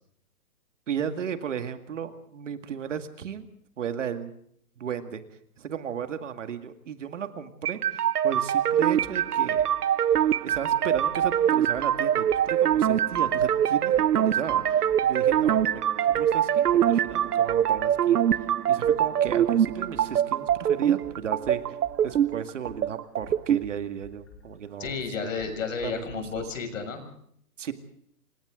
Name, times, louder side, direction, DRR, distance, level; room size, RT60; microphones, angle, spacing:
voice 1, 0.9-3.5 3.8-4.3 4.8-5.2 5.6-9.7 10.4-18.2 18.7-21.8 22.0-24.9 25.8-26.4 27.6-27.7, right 8 dB, 50° right, 9 dB, 2.2 m, -35 dB
sound 1, 7.7-23.6, right 10 dB, 75° right, 0.9 m, -23 dB
sound 2, 9.0-9.2 9.5-9.7 10.1-11.4 11.7-11.9 12.3-13.5 13.9-14.1 14.5-15.7 16.1-20.1 20.4-26.4, left 3 dB, 5° left, 0.8 m, -51 dB
voice 2, 24.8-27.0, left 5 dB, 55° left, 7 dB, 6.6 m, -32 dB
28.0 x 25.0 x 3.8 m, 0.67 s
hypercardioid pair, 175°, 47 cm